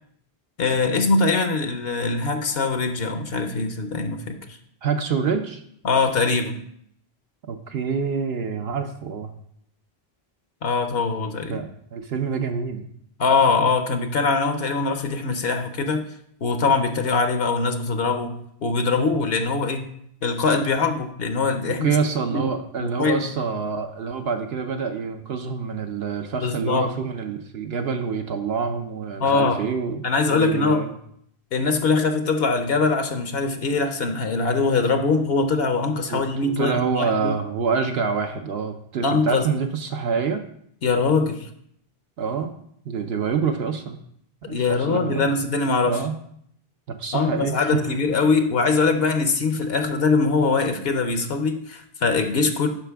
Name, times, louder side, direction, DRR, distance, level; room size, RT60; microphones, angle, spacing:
voice 1, 0.6-4.4 5.8-6.6 10.6-11.6 13.2-16.0 16.4-18.3 18.6-19.9 20.2-22.0 22.3-22.5 22.8-23.3 26.4-26.9 29.2-29.6 30.0-30.8 31.5-37.3 39.0-39.5 40.8-41.5 44.5-46.0 47.1-52.7, left 4 dB, 70° left, 7 dB, 0.9 m, -22 dB
voice 2, 4.8-5.6 7.4-9.3 11.5-12.9 21.8-30.9 36.1-40.4 42.2-42.5 42.9-44.0 44.4-45.4 45.8-46.2 46.9-47.8, right 5 dB, 75° right, 5 dB, 0.9 m, -26 dB
12.0 x 5.0 x 3.4 m, 0.69 s
omnidirectional pair, 1.1 m